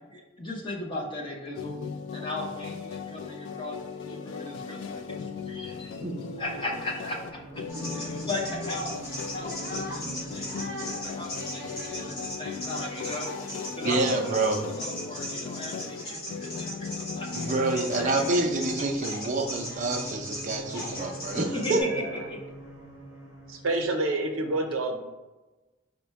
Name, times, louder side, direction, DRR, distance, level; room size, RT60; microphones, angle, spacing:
voice 1, 0.0-1.8 2.1-3.8 4.0-6.0 6.4-7.6 7.9-8.9 9.3-13.3 13.7-18.4 21.3-22.4, left 1 dB, 25° left, -2 dB, 0.7 m, -37 dB
sound 1, 1.5-19.0, left 5 dB, 65° left, 0.3 m, -38 dB
sound 2, 4.7-23.9, right 1 dB, 80° left, 1.2 m, -47 dB
sound 3, 7.7-21.8, equal, 50° left, 1.1 m, -38 dB
voice 2, 7.7-8.3 21.6-22.2 23.5-25.0, right 2 dB, 80° right, 4 dB, 0.7 m, -30 dB
voice 3, 13.8-14.6 17.3-21.8, right 3 dB, 40° right, 3 dB, 0.4 m, -27 dB
4.1 x 2.2 x 4.5 m, 1.1 s
head